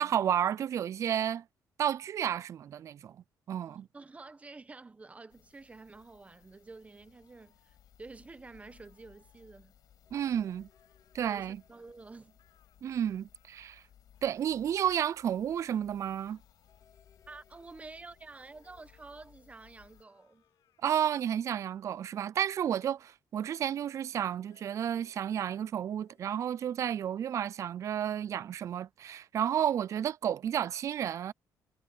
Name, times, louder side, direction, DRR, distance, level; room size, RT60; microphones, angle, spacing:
voice 1, 0.0-1.4 1.8-3.2 3.5-3.9 10.1-10.7 11.1-11.6 12.8-13.8 14.2-16.4 20.8-31.3, right 9 dB, 45° right, 0.3 m, -31 dB
voice 2, 3.6-9.7 11.2-12.4 17.3-20.4, right 3 dB, 20° right, 1.0 m, -50 dB
sound 1, 5.3-20.0, left 10 dB, 65° left, 5.6 m, -62 dB
sound 2, 7.0-7.9 8.6-9.7 10.7-11.9 12.4-12.8 13.3-13.7 14.1-14.3 14.9-15.9 16.2-16.9 17.7-17.9 18.6-19.2 19.7-20.9 21.8-22.1 22.5-23.1 23.6-23.9 24.5-24.6, left 13 dB, 85° left, 7.8 m, -74 dB
sound 3, 10.0-13.8 14.1-14.2 16.6-22.1 24.4-26.4, left 6 dB, 40° left, 6.2 m, -69 dB
cardioid pair, 130°, 7 cm